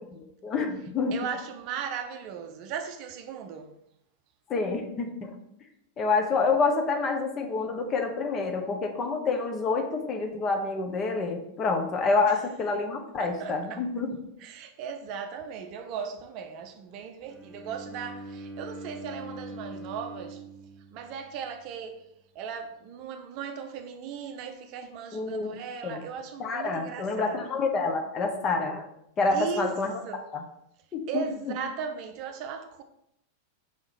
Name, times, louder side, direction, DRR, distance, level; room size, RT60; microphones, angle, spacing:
voice 1, 0.2-1.1 4.5-5.3 6.0-14.2 25.1-25.5 25.8-26.0 26.4-28.8 29.2-29.9 30.3-30.4 30.9-31.2, left 4 dB, 30° left, 0.9 m, -27 dB
voice 2, 1.1-3.7 12.3-12.4 13.2-13.9 14.4-20.4 20.9-22.0 22.3-27.6 29.3-29.7 30.0-30.3 31.1-32.8, right 7 dB, 40° right, 0.6 m, -37 dB
Bowed string instrument, 17.3-21.4, right 1 dB, 10° right, 1.0 m, -42 dB
5.5 x 3.6 x 5.0 m
figure-of-eight pair, 90°, 0 cm